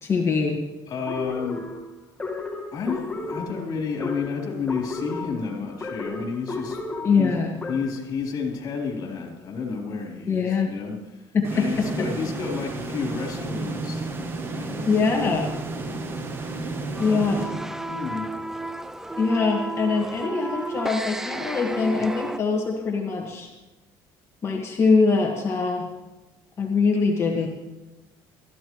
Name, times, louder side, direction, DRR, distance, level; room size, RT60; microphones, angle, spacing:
voice 1, 0.0-0.6 7.0-7.5 10.3-10.7 11.3-11.4 14.8-15.5 17.0-17.4 19.2-23.5 24.4-25.9 26.6-27.5, left 4 dB, 30° left, 0 dB, 1.7 m, -23 dB
voice 2, 0.9-1.6 2.7-6.9 7.2-7.3 7.7-14.1 14.4-14.9 15.7-16.0 16.5-17.6 17.9-18.3, left 5 dB, 45° left, 0 dB, 3.5 m, -31 dB
sound 1, 1.1-8.1, left 3 dB, 15° left, 1.7 m, -34 dB
sound 2, 11.4-18.2, right 3 dB, 25° right, 1.3 m, -32 dB
sound 3, 17.0-22.4, right 2 dB, 5° right, 0.4 m, -32 dB
19.5 x 13.5 x 3.1 m, 1.1 s
cardioid pair, 140°, 9 cm